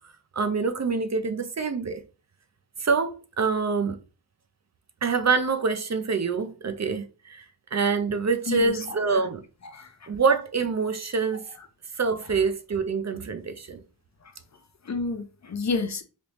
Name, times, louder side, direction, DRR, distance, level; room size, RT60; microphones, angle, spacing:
voice 1, 0.3-2.0 2.8-4.0 5.0-7.5 7.7-9.4 10.1-11.5 12.0-13.8, right 4 dB, 40° right, 0.5 m, -25 dB
voice 2, 14.8-16.0, left 3 dB, 40° left, 0.6 m, -29 dB
3.3 x 2.6 x 2.9 m
wide cardioid pair, 75°, 41 cm